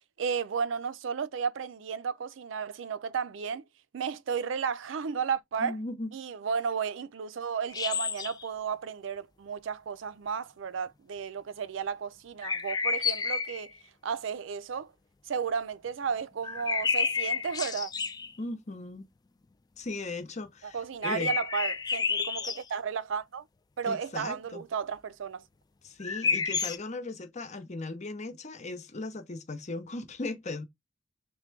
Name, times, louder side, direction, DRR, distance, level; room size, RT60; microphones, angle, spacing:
voice 1, 0.2-3.6 3.9-5.8 6.1-13.7 14.0-14.9 15.3-17.9 20.6-23.4 23.8-25.4, right 6 dB, 70° right, 0.4 m, -33 dB
voice 2, 5.6-6.1 18.4-19.1 19.8-21.3 23.9-24.6 25.8-30.6, left 2 dB, 35° left, 0.8 m, -37 dB
sound 1, 7.7-8.5 12.4-13.7 16.4-18.3 21.0-22.6 26.0-26.8, left 5 dB, 20° left, 0.4 m, -30 dB
3.6 x 2.2 x 4.4 m
head